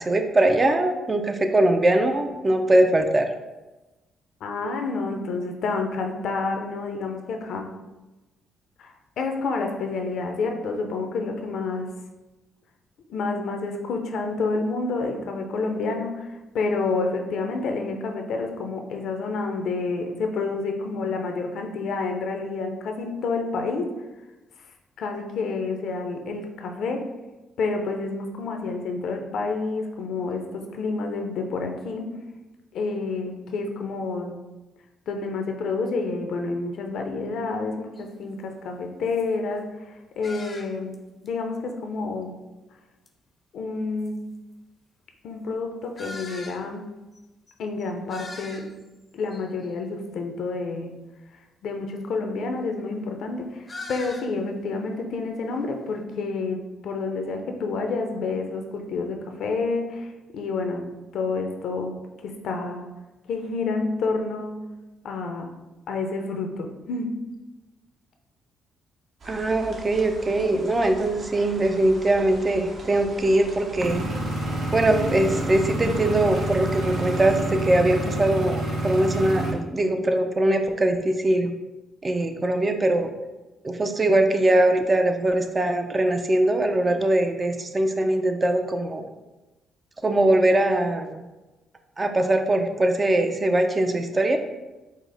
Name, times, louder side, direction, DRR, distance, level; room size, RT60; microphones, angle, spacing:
voice 1, 0.0-3.3 69.3-74.0 74.7-81.5 82.0-83.1 83.6-89.1 90.0-91.2 92.0-94.4, right 1 dB, 25° right, 6 dB, 0.4 m, -21 dB
voice 2, 4.4-7.7 8.8-8.9 9.2-11.9 13.1-23.9 25.0-27.1 27.6-32.2 32.7-34.4 35.1-39.7 40.2-40.9 41.2-42.4 43.5-44.2 45.2-46.9 47.6-48.7 49.1-51.0 51.6-60.1 60.3-62.0 62.2-62.8 63.3-64.6 65.0-65.6 65.9-67.1, left 3 dB, 75° left, 4 dB, 0.6 m, -29 dB
sound 1, 38.0-38.1 38.6-38.7 39.1-39.3 40.2-41.0 41.3-41.4 43.1-43.2 44.0-44.1 46.0-46.6 47.1-47.2 47.5-47.6 47.8-48.9 49.3-49.7 53.7-54.3, left 2 dB, 30° left, 0.5 m, -40 dB
sound 2, 69.2-77.4, right 2 dB, 55° right, 0.8 m, -42 dB
sound 3, 73.8-79.5, right 1 dB, 75° right, 0.9 m, -28 dB
5.0 x 2.0 x 3.9 m, 1.1 s
cardioid pair, 90°, 0 cm